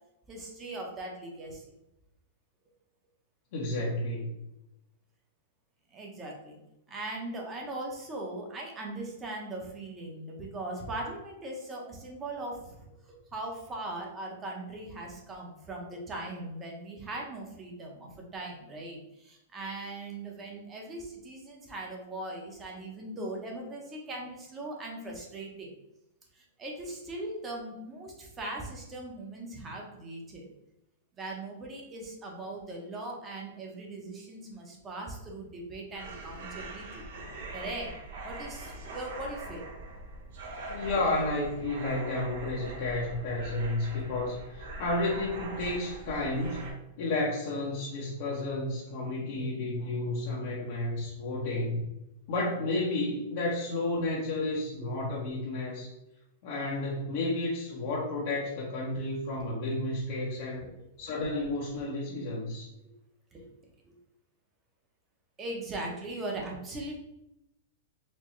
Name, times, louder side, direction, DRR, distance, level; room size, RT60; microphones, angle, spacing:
voice 1, 0.3-1.6 5.9-6.6 6.9-12.7 13.3-25.7 26.3-30.5 31.2-37.0 37.5-38.0 38.2-39.7 54.8-55.0 60.6-60.7 63.3-63.5 63.9-64.0 65.4-67.0, right 2 dB, 20° right, 0 dB, 0.9 m, -39 dB
voice 2, 3.5-4.3 40.7-46.6 47.0-51.9 52.3-55.9 56.4-60.6 61.0-62.7, left 2 dB, 60° left, -5 dB, 0.9 m, -31 dB
sound 1, 35.9-46.7, right 2 dB, 65° right, 0.9 m, -42 dB
4.3 x 2.2 x 3.1 m, 0.89 s
hypercardioid pair, 135°, 0 cm